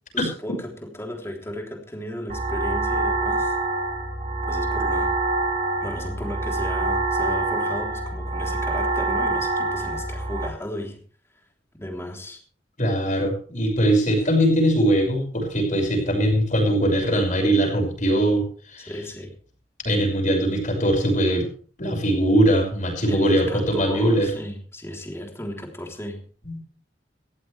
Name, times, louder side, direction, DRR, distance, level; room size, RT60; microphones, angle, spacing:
voice 1, 0.1-3.6 4.5-5.1 5.8-11.0 11.8-12.4 18.9-19.3 23.1-26.2, left 1 dB, 15° left, 1 dB, 3.5 m, -35 dB
sound 1, 2.3-10.5, right 2 dB, 45° right, 2.2 m, -25 dB
voice 2, 12.8-18.4 18.7-18.9 19.8-21.5 21.8-24.3 26.4-26.6, right 1 dB, 45° left, 2 dB, 5.9 m, -21 dB
18.5 x 14.0 x 3.4 m, 0.43 s
head